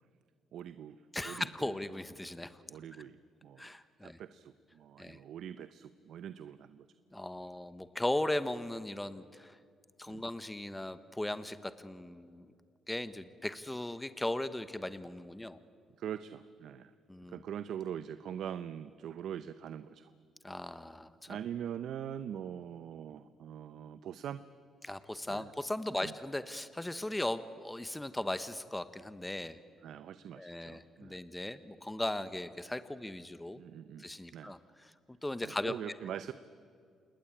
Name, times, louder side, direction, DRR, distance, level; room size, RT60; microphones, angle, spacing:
voice 1, 0.5-1.0 1.2-1.7 2.7-3.7 4.0-6.9 10.1-10.2 16.0-16.9 17.3-20.1 21.3-24.4 25.3-25.5 25.9-26.1 29.8-31.2 33.6-34.0 34.3-34.6 35.4-36.3, right 9 dB, 75° right, 12 dB, 0.8 m, -43 dB
voice 2, 1.1-2.6 3.6-4.2 5.0-5.2 7.1-9.6 10.0-12.5 12.9-15.6 17.1-17.4 20.4-21.4 24.8-29.6 30.4-33.6 34.0-34.9 35.2-35.7, left 1 dB, 10° left, 12 dB, 1.1 m, -38 dB
28.0 x 20.5 x 8.8 m, 2.3 s
cardioid pair, 90°, 0 cm